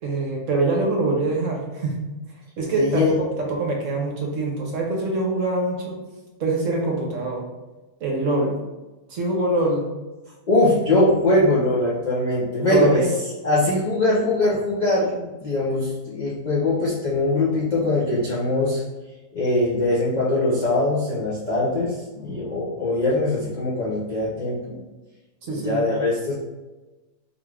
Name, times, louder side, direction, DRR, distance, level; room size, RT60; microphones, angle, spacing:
voice 1, 0.0-2.0 2.6-3.1 3.4-6.0 6.4-7.4 8.0-8.5 9.1-9.9 12.7-13.1 25.5-25.8, right 2 dB, 60° right, -1 dB, 1.0 m, -24 dB
voice 2, 2.7-3.2 10.5-13.0 13.4-18.8 19.3-24.8 25.5-26.3, left 2 dB, 55° left, -7 dB, 0.4 m, -22 dB
3.8 x 2.4 x 3.2 m, 1.1 s
omnidirectional pair, 1.6 m